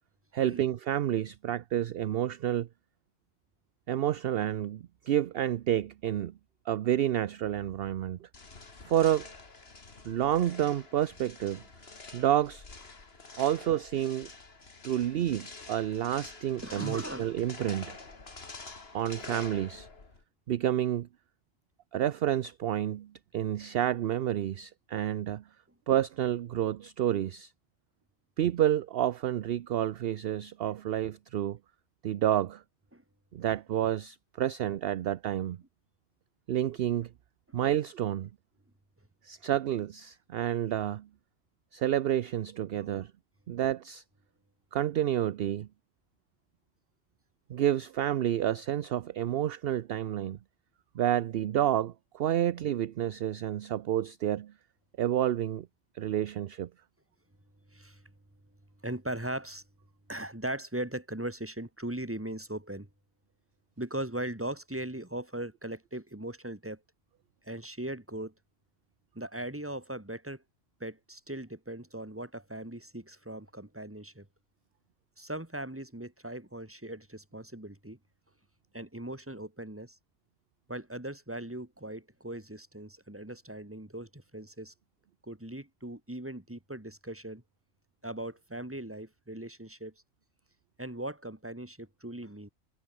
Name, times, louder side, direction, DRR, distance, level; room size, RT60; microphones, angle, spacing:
voice 1, 0.3-2.7 3.9-6.3 6.7-8.3 8.9-9.3 10.0-11.6 12.1-12.6 13.4-14.3 14.8-18.0 18.9-19.9 20.5-21.1 21.9-25.4 25.9-27.5 28.4-31.6 32.0-32.6 33.3-35.6 36.5-37.1 37.5-38.3 39.2-41.1 41.7-43.1 43.5-44.0 44.7-45.7 47.5-50.4 51.0-54.5 55.0-55.7 55.9-56.7, right 11 dB, 60° right, 0.7 m, -29 dB
sound 1, 8.3-20.2, left 3 dB, 50° left, 2.7 m, -47 dB
voice 2, 16.6-17.3 32.9-33.0 37.5-37.6 42.7-43.0 57.7-58.0 58.8-59.6 60.1-62.9 63.8-66.8 67.4-68.3 69.1-70.4 70.8-74.3 75.2-78.0 78.7-80.0 80.7-84.7 85.2-87.4 88.0-89.9 90.8-92.5, right 1 dB, 10° right, 2.3 m, -39 dB
omnidirectional pair, 1.3 m